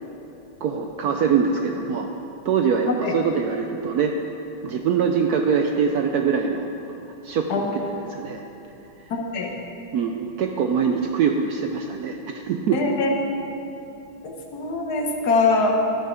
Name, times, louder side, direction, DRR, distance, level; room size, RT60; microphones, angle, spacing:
voice 1, 0.6-2.1 2.4-4.2 4.6-6.7 7.2-8.4 9.0-9.1 9.9-12.8, right 6 dB, 75° right, 4 dB, 0.9 m, -23 dB
voice 2, 9.1-9.5 12.7-13.2 14.2-15.7, left 3 dB, 60° left, 2 dB, 1.4 m, -23 dB
11.5 x 9.6 x 4.4 m, 2.9 s
omnidirectional pair, 2.1 m